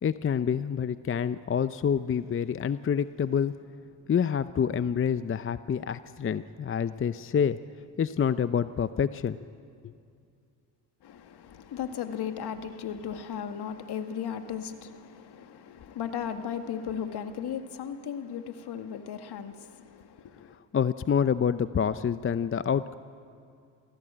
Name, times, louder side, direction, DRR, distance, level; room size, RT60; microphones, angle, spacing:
voice 1, 0.0-3.5 4.1-7.6 8.0-9.4 20.7-22.9, left 7 dB, 30° left, 0.7 m, -27 dB
voice 2, 11.0-20.6, left 8 dB, 55° left, 2.0 m, -36 dB
27.5 x 17.0 x 9.0 m
supercardioid pair, 70°, 46 cm